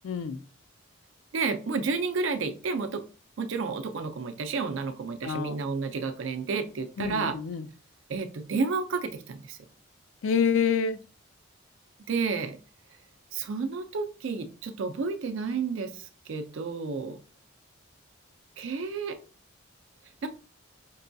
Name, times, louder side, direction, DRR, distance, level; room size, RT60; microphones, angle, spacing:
voice 1, 0.0-0.4 5.2-5.6 7.0-7.7 10.2-11.0, left 6 dB, 75° left, 12 dB, 0.4 m, -27 dB
voice 2, 1.3-3.0 3.4-7.4 8.1-9.6 12.1-12.6 13.3-17.2 18.6-19.2 20.2-20.3, right 4 dB, 70° right, 8 dB, 0.5 m, -31 dB
5.2 x 2.2 x 2.6 m, 0.37 s
head